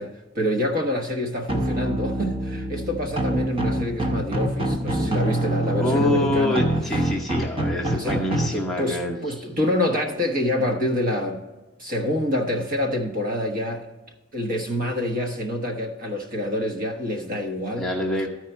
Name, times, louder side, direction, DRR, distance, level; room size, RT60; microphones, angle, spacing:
voice 1, 0.0-6.6 6.9-7.0 7.9-8.2 8.5-11.4 11.8-13.8 14.3-17.9, left 1 dB, 45° right, 3 dB, 1.2 m, -27 dB
sound 1, 1.5-8.5, right 1 dB, 25° right, 0.9 m, -25 dB
voice 2, 5.8-9.2 17.8-18.3, left 1 dB, ahead, -3 dB, 0.9 m, -25 dB
13.5 x 4.8 x 4.4 m, 1.2 s
head